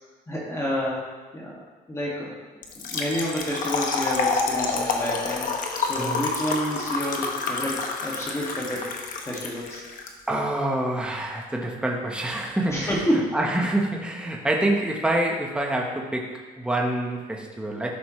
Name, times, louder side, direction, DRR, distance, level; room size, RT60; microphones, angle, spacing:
voice 1, 0.3-1.0 1.3-2.4 2.8-5.5 5.8-8.9 9.2-9.8 12.7-13.4, equal, 15° left, -5 dB, 2.2 m, -29 dB
Trickle dribble / Fill (with liquid), 2.6-10.1, left 4 dB, 55° left, 1.2 m, -28 dB
voice 2, 10.3-13.0 13.3-17.9, right 1 dB, 5° right, 0 dB, 1.2 m, -26 dB
13.0 x 6.1 x 3.2 m, 1.3 s
cardioid pair, 110°, 17 cm